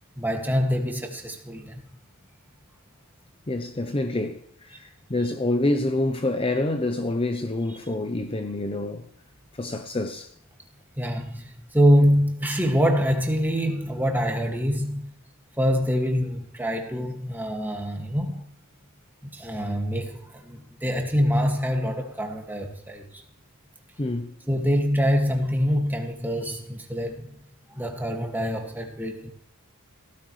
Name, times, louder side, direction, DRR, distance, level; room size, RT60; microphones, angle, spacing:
voice 1, 0.2-1.8 11.0-15.0 15.6-18.4 19.2-23.2 24.5-27.3 27.7-29.3, equal, 10° right, 2.1 m, -25 dB
voice 2, 3.5-9.0 9.5-10.3 24.0-24.3, left 2 dB, 25° left, 0.8 m, -27 dB
16.5 x 14.5 x 3.3 m
head